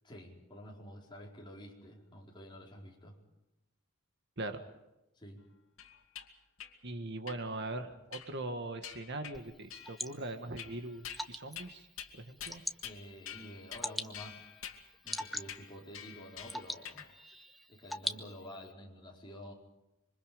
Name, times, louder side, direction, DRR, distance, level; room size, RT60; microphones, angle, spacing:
voice 1, 0.0-3.2 5.1-5.4 12.8-14.5 15.0-17.2 17.7-19.5, equal, 20° left, -2 dB, 4.6 m, -49 dB
sound 1, 5.8-6.3 6.6-6.7 7.3-7.4 8.1-8.5 8.8-9.4 9.7-10.1 10.6-11.2 11.6-11.7 12.0-12.1 12.4-13.0 13.3-13.9 14.1-17.1, left 9 dB, 75° left, 2.5 m, -47 dB
voice 2, 6.8-11.9 12.2-12.6, right 2 dB, 55° right, 8 dB, 1.7 m, -41 dB
Water / Drip, 9.3-18.7, equal, ahead, 1.0 m, -44 dB
26.5 x 24.5 x 5.2 m, 0.95 s
head